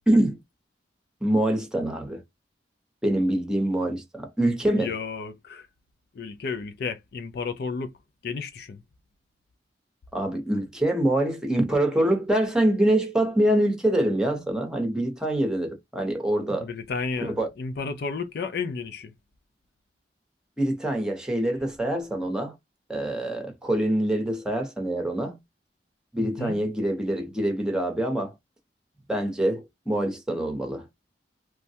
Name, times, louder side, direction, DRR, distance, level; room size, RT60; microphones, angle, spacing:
voice 1, 0.1-0.4 1.2-2.2 3.0-4.9 10.1-16.7 17.2-17.5 20.6-22.5 22.9-25.4 26.1-28.3 29.1-30.9, right 1 dB, 5° right, 0.8 m, -25 dB
voice 2, 4.8-5.7 6.1-7.9 8.2-8.8 16.6-19.1 26.2-26.6, left 5 dB, 60° left, 0.4 m, -32 dB
3.1 x 2.2 x 2.7 m
head